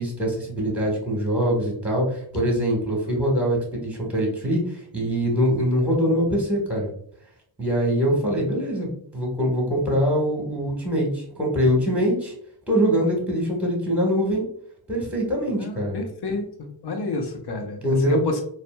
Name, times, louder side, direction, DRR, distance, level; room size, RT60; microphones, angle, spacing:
voice 1, 0.0-4.6 4.9-6.9 7.6-12.3 12.7-14.4 14.9-16.0 17.8-18.2, equal, 5° right, -2 dB, 1.4 m, -23 dB
voice 2, 8.1-8.5 15.6-18.4, left 2 dB, 50° left, 4 dB, 0.8 m, -30 dB
4.1 x 2.1 x 2.2 m, 0.65 s
cardioid pair, 40°, 50 cm